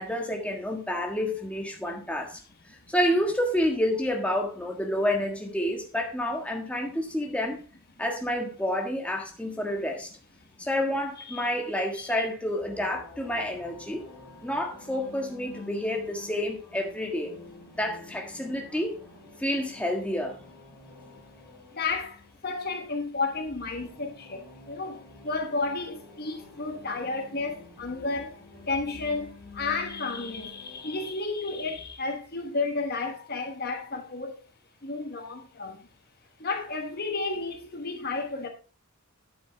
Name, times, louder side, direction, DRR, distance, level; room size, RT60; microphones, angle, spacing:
voice 1, 0.0-2.4 2.7-7.6 8.0-10.1 10.6-14.0 14.4-17.3 17.7-19.0 19.4-20.4, left 1 dB, 5° left, 1.5 m, -29 dB
sound 1, 12.6-31.1, left 3 dB, 10° right, 5.0 m, -49 dB
voice 2, 21.7-34.4 34.8-35.8 36.4-38.5, left 3 dB, 45° left, 1.1 m, -32 dB
9.6 x 8.1 x 3.4 m
head